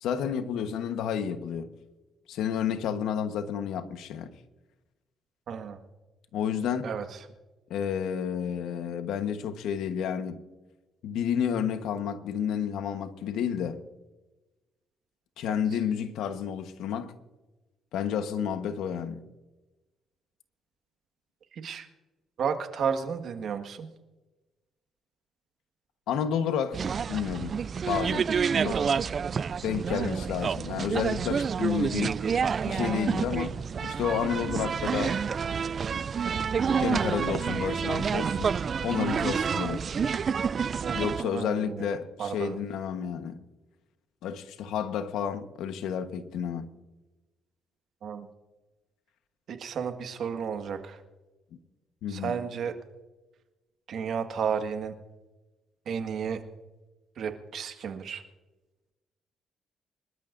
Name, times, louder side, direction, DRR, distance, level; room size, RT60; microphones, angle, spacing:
voice 1, 0.0-1.7 2.3-4.3 6.3-6.9 7.7-10.4 11.0-13.8 15.4-17.1 17.9-19.2 26.1-26.8 27.1-27.6 27.9-28.3 28.6-28.8 29.6-32.2 32.7-33.5 33.8-35.2 36.8-38.5 38.8-39.9 40.9-43.4 44.2-46.7 52.0-52.4, left 8 dB, 85° left, 1.1 m, -30 dB
voice 2, 5.5-5.8 6.8-7.2 15.5-15.6 21.5-21.9 22.4-23.9 28.6-29.0 40.8-41.9 42.2-42.6 48.0-48.3 49.5-51.0 52.1-52.7 53.9-54.9 55.8-56.4 57.2-58.2, right 7 dB, 65° right, 1.7 m, -33 dB
sound 1, 26.7-41.2, right 6 dB, 45° right, 0.3 m, -28 dB
25.5 x 13.0 x 2.6 m
cardioid pair, 90°, 0 cm